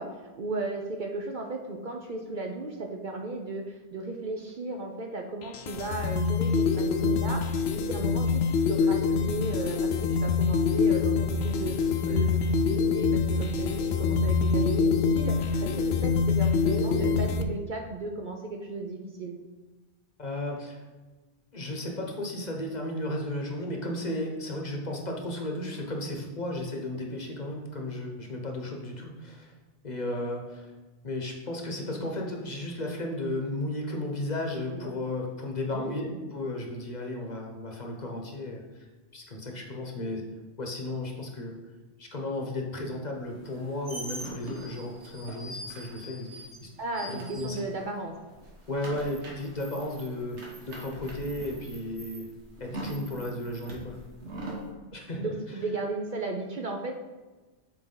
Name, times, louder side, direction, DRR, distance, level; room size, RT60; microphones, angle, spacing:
voice 1, 0.0-8.4 8.7-19.4 34.7-34.9 35.7-36.2 46.8-48.1 55.2-57.0, right 3 dB, 55° right, 2 dB, 0.7 m, -35 dB
sound 1, 5.4-17.4, left 5 dB, 70° left, 0.8 m, -25 dB
voice 2, 20.2-20.8 21.5-29.5 29.8-30.7 31.0-38.9 39.1-40.2 40.6-41.6 42.0-46.7 47.1-47.6 48.7-50.4 50.6-52.3 52.6-54.0 54.9-55.3, left 1 dB, 40° left, 1 dB, 1.0 m, -34 dB
sound 2, 43.4-48.0 48.3-54.7, right 1 dB, 90° right, 1.6 m, -42 dB
7.7 x 4.5 x 3.8 m, 1.2 s
omnidirectional pair, 1.1 m